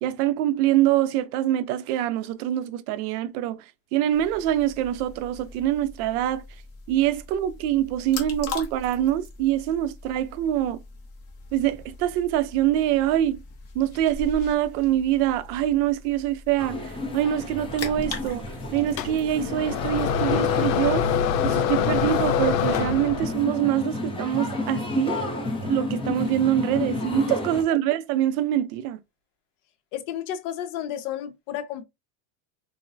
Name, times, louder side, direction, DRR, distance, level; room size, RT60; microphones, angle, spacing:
voice 1, 0.0-3.6 3.9-6.4 6.9-10.8 11.5-13.4 13.7-18.5 18.7-21.0 21.4-25.2 25.7-29.0, right 12 dB, 65° right, 0.6 m, -24 dB
sound 1, 4.1-20.5, left 3 dB, 30° left, 0.8 m, -41 dB
sound 2, 16.6-27.6, left 2 dB, 10° left, 0.4 m, -32 dB
sound 3, 19.0-23.5, left 8 dB, 90° left, 0.7 m, -24 dB
voice 2, 29.9-31.8, left 10 dB, 60° left, 0.8 m, -32 dB
3.8 x 2.1 x 2.5 m
supercardioid pair, 135°, 50 cm